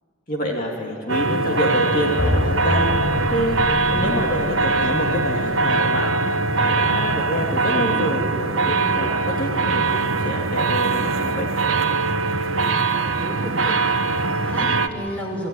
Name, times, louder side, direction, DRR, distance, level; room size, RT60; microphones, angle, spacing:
voice 1, 0.3-2.9 3.3-3.6 3.9-6.2 6.5-11.5, equal, 40° left, 0 dB, 2.5 m, -26 dB
sound 1, 1.1-14.9, right 3 dB, 65° right, 1.1 m, -22 dB
sound 2, 1.8-5.8, left 1 dB, 60° left, 4.7 m, -27 dB
voice 2, 13.1-15.5, equal, 5° left, 0 dB, 4.6 m, -33 dB
29.0 x 18.5 x 9.9 m, 2.5 s
head